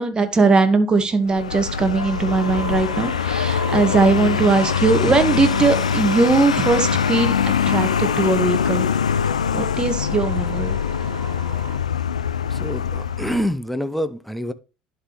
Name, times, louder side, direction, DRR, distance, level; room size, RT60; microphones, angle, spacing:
voice 1, 0.0-7.3 7.7-8.9 9.5-10.8, right 3 dB, 25° right, 1.4 m, -19 dB
Vehicle, 1.3-13.5, left 7 dB, 90° left, 0.3 m, -23 dB
sound 1, 2.0-11.8, right 6 dB, 50° right, 2.3 m, -37 dB
voice 2, 12.5-14.5, equal, ahead, 0.7 m, -26 dB
11.5 x 4.1 x 3.0 m
hypercardioid pair, 70°, 3 cm